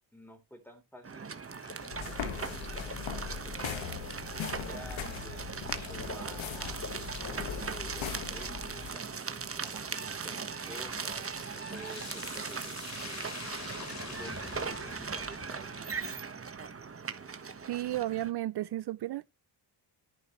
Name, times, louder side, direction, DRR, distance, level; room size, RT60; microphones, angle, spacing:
voice 1, 0.1-1.2 1.8-5.5 5.9-6.8 7.2-13.3 14.0-15.9, equal, 5° left, 3.6 m, -51 dB
sound 1, 1.0-18.3, right 5 dB, 30° right, 1.4 m, -39 dB
sound 2, 1.6-16.1, left 3 dB, 35° left, 4.0 m, -47 dB
sound 3, 1.9-8.9, left 8 dB, 85° left, 1.6 m, -40 dB
voice 2, 17.7-19.3, right 14 dB, 60° right, 0.5 m, -33 dB
10.5 x 9.5 x 3.1 m
cardioid pair, 90°, 45 cm